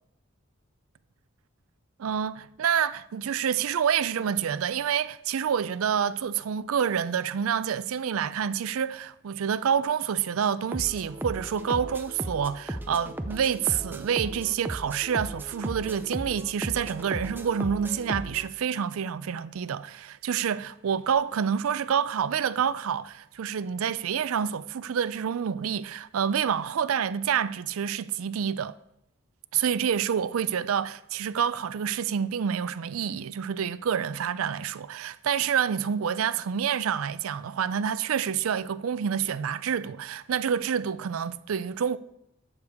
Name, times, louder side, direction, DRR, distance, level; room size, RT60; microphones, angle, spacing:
voice 1, 2.0-28.7 29.5-42.0, right 8 dB, 85° right, 0.4 m, -28 dB
sound 1, 10.7-18.5, right 1 dB, 10° right, 0.4 m, -36 dB
12.5 x 6.7 x 3.5 m
head